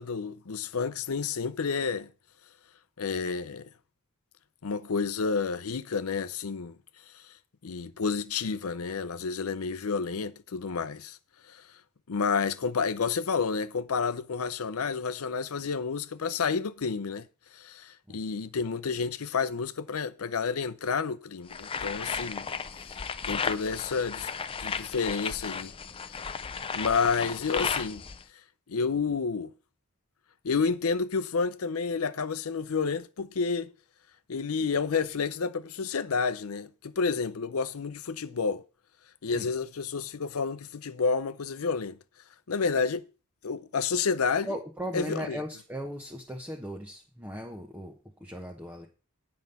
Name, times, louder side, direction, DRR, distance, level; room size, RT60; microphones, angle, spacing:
voice 1, 0.0-2.1 3.0-3.7 4.6-6.7 7.1-7.2 7.6-11.2 11.5-11.6 12.1-17.3 17.5-22.5 22.9-24.3 24.6-25.7 26.7-28.0 28.7-29.5 30.4-33.7 34.3-38.6 39.2-42.0 42.5-43.1 43.4-44.5 44.9-45.4, left 5 dB, 80° left, 0.6 m, -30 dB
sound 1, 21.5-28.2, left 6 dB, 25° left, 0.5 m, -34 dB
voice 2, 44.5-48.9, equal, 10° right, 0.9 m, -38 dB
9.4 x 5.4 x 6.7 m
head